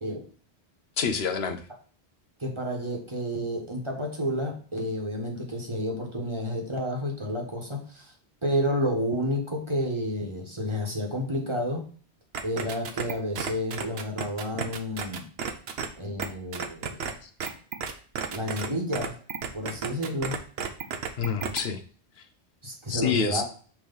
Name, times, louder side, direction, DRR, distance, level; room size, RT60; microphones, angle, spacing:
voice 1, 1.0-1.6 17.2-17.3 21.2-21.8 22.9-23.4, left 6 dB, 75° left, 1.0 m, -27 dB
voice 2, 2.4-8.1 8.4-11.9 12.4-15.3 16.0-17.0 18.3-19.2 19.5-20.4 22.6-23.4, equal, 30° right, 1.3 m, -30 dB
sound 1, 12.3-15.9 16.2-16.3 16.5-17.1 17.4-18.7 18.9-21.6, right 6 dB, 70° right, 0.9 m, -32 dB
5.9 x 3.1 x 5.3 m
omnidirectional pair, 1.1 m